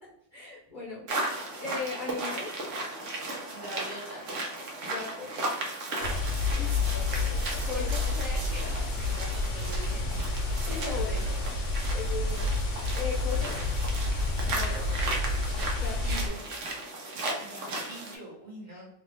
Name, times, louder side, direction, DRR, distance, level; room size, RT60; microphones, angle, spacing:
voice 1, 0.3-1.3 1.6-2.5 4.8-5.3 6.6-6.7 7.6-8.0 10.7-11.2 11.9-12.5 12.9-13.6 15.8-16.4, left 4 dB, 45° left, -5 dB, 0.8 m, -37 dB
sound 1, 1.1-18.2, right 2 dB, 75° right, 1.1 m, -36 dB
voice 2, 3.5-4.3 6.9-7.4 7.7-10.2 10.6-11.7 14.4-14.9 17.4-18.9, equal, 40° right, -5 dB, 1.2 m, -43 dB
sound 2, 6.0-16.3, left 3 dB, 75° left, 0.9 m, -29 dB
2.9 x 2.4 x 3.3 m, 0.84 s
omnidirectional pair, 1.3 m